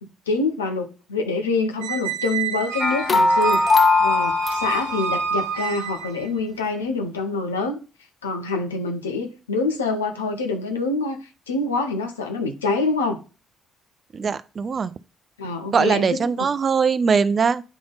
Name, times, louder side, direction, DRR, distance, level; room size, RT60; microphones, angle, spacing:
voice 1, 0.0-7.8 8.2-11.2 11.5-13.2 15.4-16.4, left 3 dB, 85° left, 0.8 m, -26 dB
Squeak, 1.8-6.3, right 5 dB, 80° right, 0.8 m, -28 dB
sound 1, 2.8-5.3, left 3 dB, 35° left, 0.7 m, -20 dB
voice 2, 14.1-14.9 15.7-17.6, right 5 dB, 40° right, 0.5 m, -21 dB
9.2 x 3.4 x 3.8 m
hypercardioid pair, 45°, 0 cm